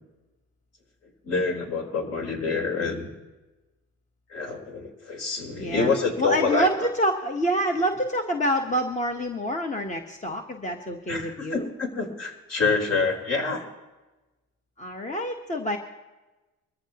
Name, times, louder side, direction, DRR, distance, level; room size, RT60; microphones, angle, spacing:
voice 1, 1.2-3.1 4.3-6.9 11.1-13.6, left 4 dB, 55° left, 1 dB, 4.4 m, -27 dB
voice 2, 6.2-11.7 14.8-15.8, equal, 25° left, 3 dB, 1.4 m, -27 dB
23.0 x 14.5 x 3.0 m, 1.1 s
cardioid pair, 90°, 30 cm